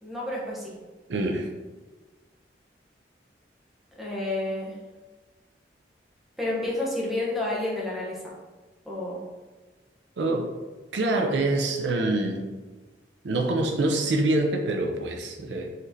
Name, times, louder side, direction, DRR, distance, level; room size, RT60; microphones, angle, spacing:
voice 1, 0.0-0.7 4.0-4.8 6.4-8.3 8.9-9.2, left 2 dB, ahead, -6 dB, 0.8 m, -30 dB
voice 2, 1.1-1.5 10.2-10.5 10.9-12.5 13.2-15.7, right 2 dB, 80° right, 2 dB, 0.5 m, -25 dB
4.1 x 3.1 x 2.7 m, 1.3 s
head